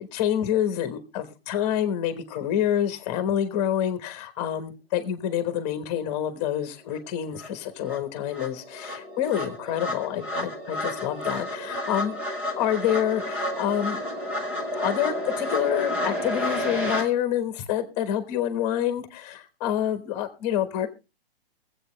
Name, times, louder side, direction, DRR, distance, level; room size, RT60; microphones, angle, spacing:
voice 1, 0.0-12.2 12.6-14.0 14.7-20.9, left 10 dB, 20° left, 11 dB, 1.2 m, -27 dB
sound 1, 6.9-7.0 7.4-17.0, left 1 dB, 5° right, 0.5 m, -31 dB
23.0 x 8.1 x 3.2 m, 0.28 s
hypercardioid pair, 170°, 30 cm